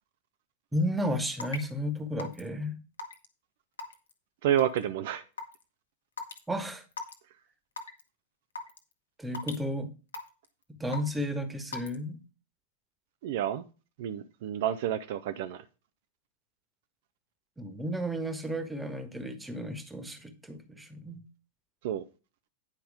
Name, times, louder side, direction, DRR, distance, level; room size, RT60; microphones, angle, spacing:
voice 1, 0.7-2.8 6.5-6.8 9.2-9.9 10.8-12.2 17.6-21.2, equal, 10° right, 1.5 m, -33 dB
Raindrop / Water tap faucet / Drip, 1.4-1.6 2.2-2.5 3.0-3.3 3.8-4.1 4.6-4.8 5.4-5.5 6.2-6.4 6.9-7.1 7.8-8.0 8.6-8.8 9.3-9.6 10.1-10.5 10.9-11.2 11.7-12.0, left 4 dB, 70° left, 1.3 m, -37 dB
voice 2, 4.4-5.2 13.2-13.6 14.0-15.6 21.8-22.0, right 11 dB, 50° right, 0.6 m, -29 dB
9.8 x 5.6 x 5.0 m
figure-of-eight pair, 90°, 0 cm